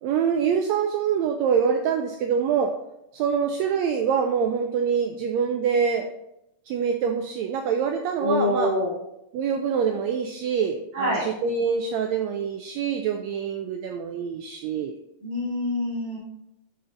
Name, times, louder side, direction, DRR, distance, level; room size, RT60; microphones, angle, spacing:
voice 1, 0.0-2.7 3.1-6.1 6.7-8.7 9.3-14.9, right 7 dB, 90° right, 5 dB, 1.5 m, -25 dB
voice 2, 8.2-8.9 10.9-11.3 15.2-16.2, left 1 dB, 60° right, -7 dB, 4.1 m, -25 dB
11.0 x 4.0 x 3.8 m, 0.83 s
omnidirectional pair, 3.7 m